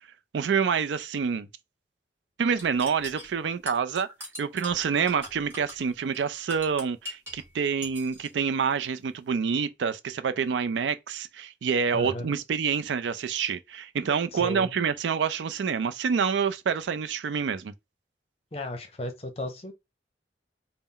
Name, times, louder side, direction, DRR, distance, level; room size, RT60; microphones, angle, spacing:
voice 1, 0.3-1.5 2.4-4.1 4.4-17.7, right 6 dB, 85° right, 0.4 m, -27 dB
sound 1, 2.6-7.5 7.8-8.3, equal, 15° right, 1.2 m, -42 dB
voice 2, 11.9-12.3 14.3-14.7 18.5-19.7, left 1 dB, 35° left, 0.7 m, -34 dB
4.0 x 2.0 x 3.8 m
head